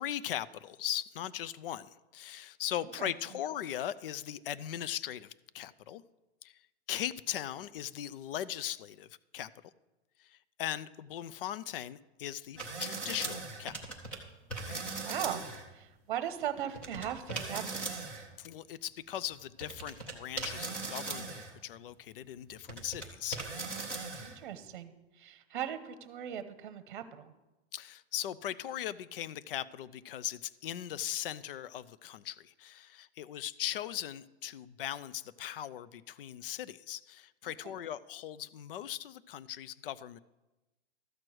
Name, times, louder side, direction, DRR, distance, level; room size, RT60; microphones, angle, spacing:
voice 1, 0.0-6.0 6.4-6.6 6.9-9.5 10.2-13.7 14.7-14.8 18.4-23.6 27.7-40.2, left 11 dB, 55° left, 17 dB, 0.4 m, -39 dB
sound 1, 12.6-14.2 14.5-15.7 16.7-18.3 19.3-19.4 19.6-21.5 22.2-23.1 23.3-24.4, right 3 dB, 5° left, 0.5 m, -39 dB
voice 2, 15.0-15.4 15.7-18.1 24.2-27.3 37.6-37.7, right 10 dB, 45° right, 11 dB, 1.0 m, -39 dB
13.5 x 4.5 x 7.8 m, 1.1 s
supercardioid pair, 175°, 34 cm